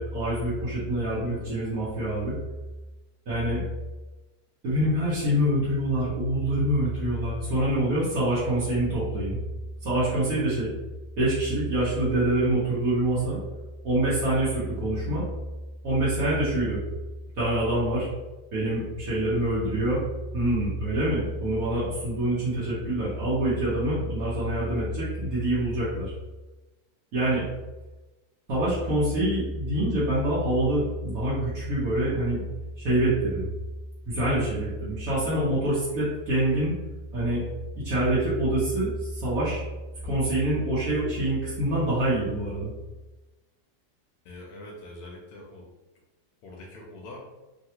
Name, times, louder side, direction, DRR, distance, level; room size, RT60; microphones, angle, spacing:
voice 1, 0.0-2.3 3.3-3.6 4.6-9.4 9.8-10.7 11.2-13.4 13.8-15.2 15.8-16.8 17.4-18.1 18.5-20.0 20.3-26.1 27.1-27.4 28.5-32.4 32.8-33.5 34.1-36.7 37.1-37.4 37.8-39.6 40.0-42.7, right 1 dB, 60° right, -10 dB, 1.3 m, -25 dB
voice 2, 44.2-45.7 46.4-47.2, left 1 dB, 70° left, -2 dB, 1.0 m, -43 dB
3.2 x 2.3 x 2.8 m, 1.1 s
omnidirectional pair, 1.8 m